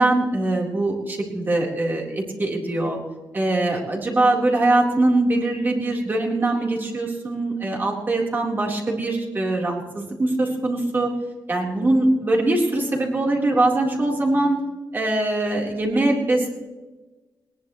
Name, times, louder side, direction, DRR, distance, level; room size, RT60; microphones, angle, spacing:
voice 1, 0.0-3.0 3.3-11.1 11.5-14.6 14.9-16.5, right 2 dB, 30° right, -1 dB, 4.0 m, -22 dB
20.5 x 19.5 x 3.2 m, 1.2 s
wide cardioid pair, 145°, 7 cm